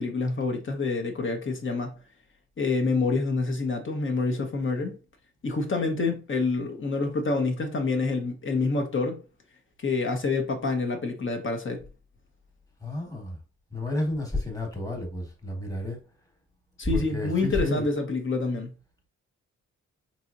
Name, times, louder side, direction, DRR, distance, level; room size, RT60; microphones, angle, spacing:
voice 1, 0.0-2.0 2.6-5.0 5.4-9.2 9.8-11.8 16.8-18.7, left 3 dB, 40° left, 0.9 m, -27 dB
voice 2, 12.8-13.4 13.7-16.0 16.9-17.9, left 1 dB, 10° left, 1.4 m, -30 dB
3.9 x 3.0 x 2.5 m
cardioid pair, 70°, 30 cm